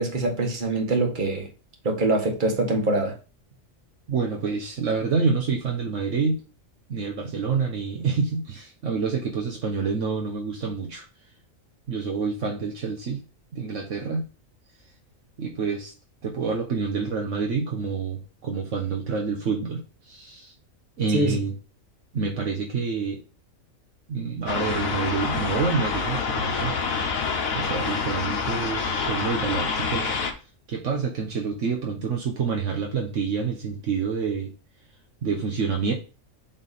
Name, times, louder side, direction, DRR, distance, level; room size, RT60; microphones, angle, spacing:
voice 1, 0.0-1.5 1.8-3.1 21.1-21.4, right 2 dB, 40° right, 2 dB, 1.6 m, -24 dB
voice 2, 4.1-6.4 6.9-11.0 11.9-13.2 13.5-14.3 15.4-15.9 16.2-20.5 21.0-21.5 22.1-23.2 24.1-26.7 27.5-30.2 30.7-34.5 35.2-35.9, right 5 dB, 65° right, 1 dB, 1.3 m, -27 dB
sound 1, 24.5-30.3, left 5 dB, 85° left, 1.4 m, -27 dB
7.6 x 3.5 x 4.1 m, 0.34 s
omnidirectional pair, 1.4 m